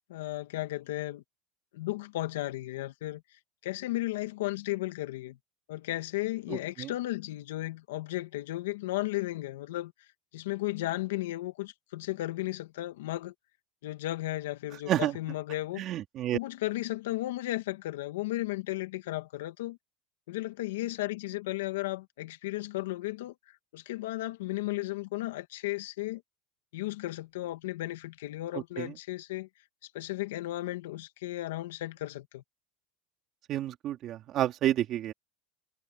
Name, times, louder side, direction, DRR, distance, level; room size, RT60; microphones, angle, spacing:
voice 1, 0.1-1.2 1.7-3.2 3.6-5.4 5.7-9.9 10.3-13.3 13.8-15.8 16.3-19.8 20.3-23.3 23.7-26.2 26.7-29.5 29.8-32.4, left 17 dB, 90° left, 2.1 m, -34 dB
voice 2, 6.5-6.9 14.9-15.2 15.8-16.4 28.5-28.9 33.5-35.1, right 12 dB, 40° right, 3.5 m, -30 dB
supercardioid pair, 140°, 0 cm